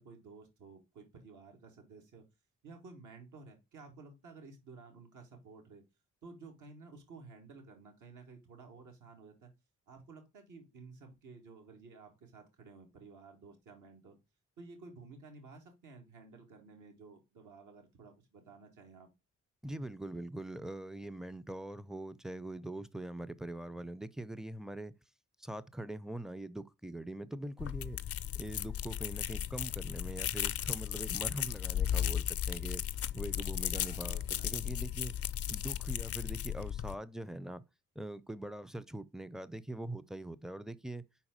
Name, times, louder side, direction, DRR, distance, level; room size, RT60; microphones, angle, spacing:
voice 1, 0.0-2.3 2.6-5.8 6.2-9.5 9.9-14.2 14.6-19.1 33.6-34.6, right 4 dB, 70° right, 1.7 m, -54 dB
voice 2, 19.6-24.9 25.4-28.0 28.3-32.8 33.1-35.1 35.5-37.6 38.0-41.1, right 1 dB, ahead, 0.5 m, -42 dB
sound 1, 27.6-37.0, left 10 dB, 50° left, 0.5 m, -36 dB
4.8 x 4.1 x 5.1 m
supercardioid pair, 45°, 31 cm